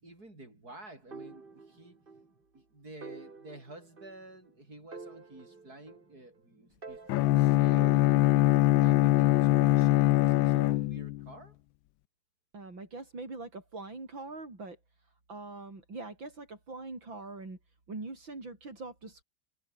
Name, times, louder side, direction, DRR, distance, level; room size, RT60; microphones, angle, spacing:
voice 1, 0.0-2.0 2.5-7.8 8.7-11.6, right 2 dB, 50° right, 7.8 m, -50 dB
sound 1, 1.1-2.3 2.6-2.7 3.0-4.5 4.9-6.4 6.8-8.7, right 4 dB, 30° right, 1.9 m, -48 dB
Bowed string instrument, 7.1-11.3, left 16 dB, 90° left, 1.4 m, -23 dB
voice 2, 12.5-14.8 15.3-17.6 17.9-19.2, right 3 dB, 80° right, 6.7 m, -42 dB
omnidirectional pair, 2.1 m